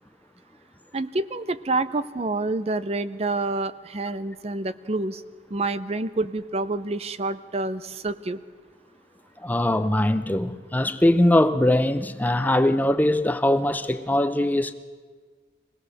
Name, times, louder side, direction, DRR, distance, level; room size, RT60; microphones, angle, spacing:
voice 1, 0.9-5.2 5.5-8.4, right 2 dB, 35° right, 0.6 m, -28 dB
voice 2, 9.4-14.7, left 1 dB, 10° left, 0.5 m, -21 dB
24.0 x 17.5 x 6.4 m
head